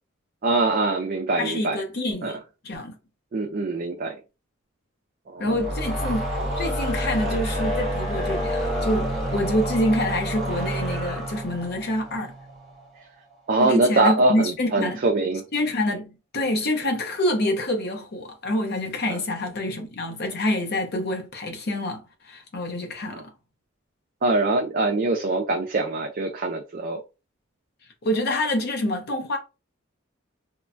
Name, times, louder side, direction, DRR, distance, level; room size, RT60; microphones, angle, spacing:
voice 1, 0.4-1.8 2.2-2.4 3.3-4.2 5.3-5.7 13.5-15.5 19.1-19.2 23.1-23.2 24.2-27.0, right 2 dB, 40° right, 0.4 m, -23 dB
voice 2, 1.4-2.4 2.6-3.0 5.4-6.3 6.6-12.3 13.6-15.0 15.5-23.2 28.0-29.4, left 1 dB, 50° left, 0.6 m, -26 dB
sound 1, 5.4-12.8, equal, ahead, 1.2 m, -28 dB
3.0 x 2.2 x 2.4 m
head